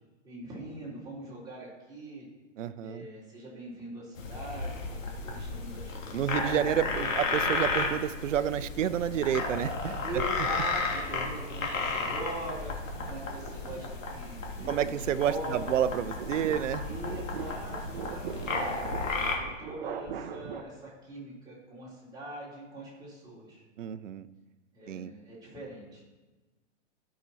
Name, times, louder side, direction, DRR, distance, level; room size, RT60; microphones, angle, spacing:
voice 1, 0.2-2.3 2.8-6.5 6.9-7.1 10.0-14.9 15.2-15.7 16.8-18.7 19.1-23.6 24.7-26.0, right 1 dB, 10° right, -7 dB, 3.8 m, -42 dB
voice 2, 2.6-3.1 6.1-10.2 14.7-16.8 23.8-24.3 24.9-25.1, right 10 dB, 70° right, 13 dB, 0.7 m, -30 dB
sound 1, 4.2-19.4, left 3 dB, 85° left, 2.3 m, -33 dB
sound 2, 6.6-8.0 8.5-20.6, right 8 dB, 45° right, 0.9 m, -44 dB
13.0 x 6.1 x 4.2 m, 1.2 s
hypercardioid pair, 145°, 38 cm